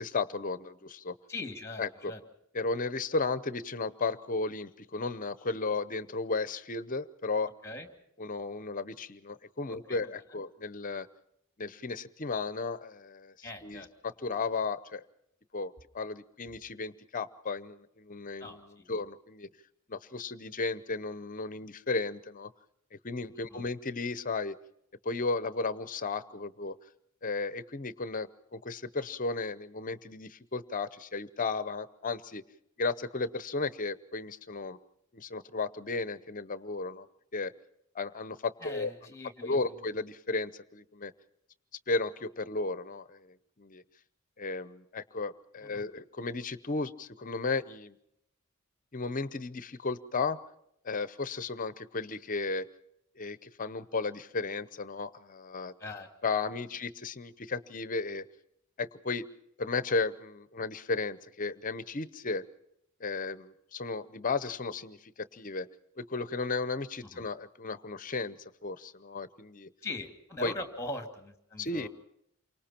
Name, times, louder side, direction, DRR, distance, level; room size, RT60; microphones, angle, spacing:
voice 1, 0.0-1.1 1.8-2.1 2.5-7.5 8.2-11.1 11.6-13.3 13.6-15.0 15.5-19.5 19.9-22.5 23.0-24.6 25.0-26.8 27.2-32.4 32.8-34.8 35.1-37.1 37.3-37.5 37.9-38.9 39.4-41.1 41.9-43.3 43.6-43.8 44.4-47.9 48.9-50.4 50.8-52.7 53.2-55.7 56.2-58.2 58.8-59.3 59.6-62.4 63.0-65.7 66.0-68.4 68.6-69.7 70.4-70.5 71.6-71.9, left 3 dB, 40° left, 15 dB, 0.7 m, -34 dB
voice 2, 1.3-2.2 7.6-7.9 9.7-10.0 13.4-13.9 18.4-18.9 23.5-23.6 38.6-39.8 45.6-45.8 55.8-56.1 67.1-67.2 69.8-71.9, left 2 dB, 15° left, 6 dB, 2.5 m, -41 dB
28.5 x 24.5 x 4.4 m, 0.75 s
head